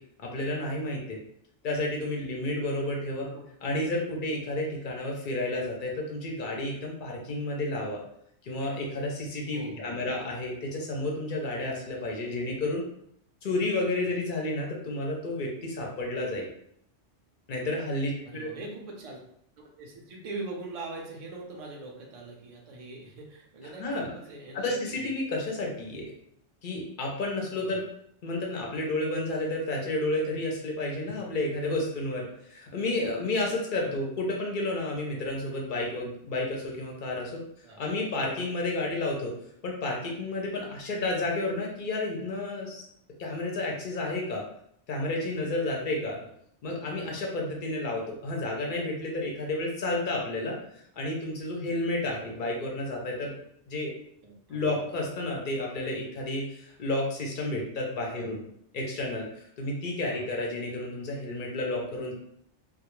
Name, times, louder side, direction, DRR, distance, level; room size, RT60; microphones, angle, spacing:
voice 1, 0.2-1.2 1.6-3.3 3.6-8.0 8.4-12.8 13.4-16.5 17.5-18.5 23.6-24.1 24.5-26.1 26.6-27.8 28.2-37.4 37.8-39.3 39.6-42.8 43.2-44.4 44.9-46.2 46.6-53.3 53.7-53.9 54.5-58.4 58.7-62.1, left 2 dB, 55° left, -1 dB, 0.6 m, -31 dB
voice 2, 9.5-10.0 18.2-19.2 19.8-25.0 27.6-27.8 31.0-31.1 33.8-34.0 37.6-37.8 46.0-46.3 52.1-52.3 54.2-54.8 58.1-58.3 60.1-60.2, right 2 dB, 50° right, -1 dB, 0.4 m, -42 dB
2.2 x 2.0 x 2.9 m, 0.71 s
omnidirectional pair, 1.2 m